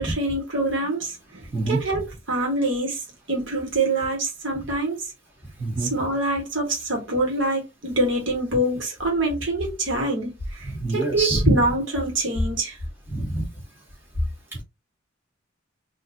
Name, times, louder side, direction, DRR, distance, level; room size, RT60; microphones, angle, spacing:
voice 1, 0.0-5.1 5.8-12.8, right 2 dB, 65° right, 1.6 m, -25 dB
voice 2, 5.6-5.9 10.7-11.6 13.1-13.5 14.5-14.6, right 2 dB, 10° right, 1.5 m, -24 dB
3.9 x 2.7 x 2.7 m
head